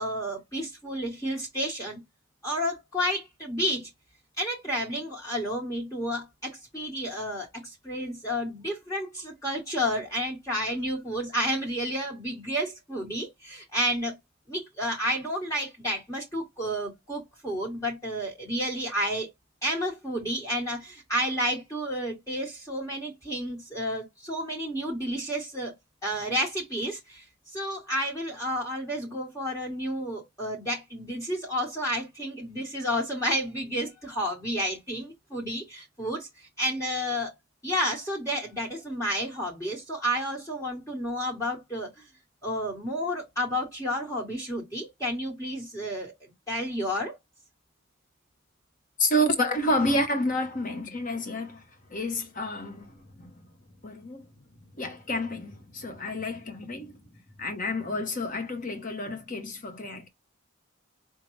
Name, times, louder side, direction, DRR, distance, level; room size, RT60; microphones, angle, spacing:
voice 1, 0.0-2.0 2.4-3.9 4.4-14.1 14.5-19.3 19.6-25.7 26.0-27.2 27.5-37.3 37.6-42.1 42.4-47.2, equal, 15° left, 1.4 m, -31 dB
voice 2, 49.0-51.6 51.9-53.3 53.8-54.3 54.8-57.0 57.4-60.1, left 1 dB, 40° left, 0.9 m, -29 dB
5.2 x 2.3 x 3.1 m
head